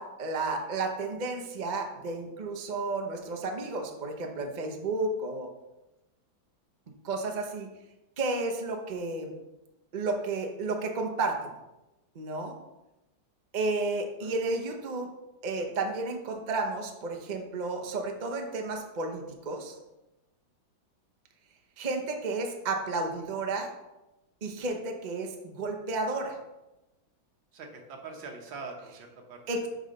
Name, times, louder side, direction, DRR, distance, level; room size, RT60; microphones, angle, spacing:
voice 1, 0.0-5.5 7.0-7.7 8.2-9.3 9.9-11.5 12.1-12.5 13.5-15.1 15.4-19.8 21.8-23.7 24.4-26.4 29.5-29.7, right 3 dB, 50° right, 3 dB, 0.5 m, -32 dB
voice 2, 27.5-29.7, right 4 dB, 70° right, 2 dB, 1.9 m, -43 dB
6.5 x 5.6 x 5.2 m, 1.0 s
omnidirectional pair, 2.2 m